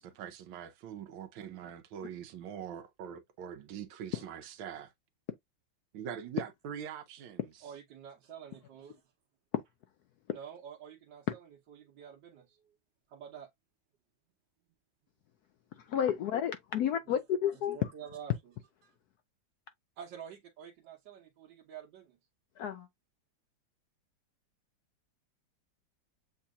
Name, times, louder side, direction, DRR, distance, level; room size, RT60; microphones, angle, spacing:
voice 1, 0.0-4.9 5.9-7.5, right 8 dB, 90° right, 1.5 m, -43 dB
voice 2, 7.6-9.0 10.3-12.8 13.1-13.5 17.1-17.2 17.5-18.5 18.8-18.9 20.0-22.2, right 8 dB, 70° right, 1.5 m, -49 dB
voice 3, 15.8-17.9 22.6-22.9, left 9 dB, 75° left, 0.9 m, -31 dB
7.4 x 2.8 x 2.3 m
omnidirectional pair, 2.1 m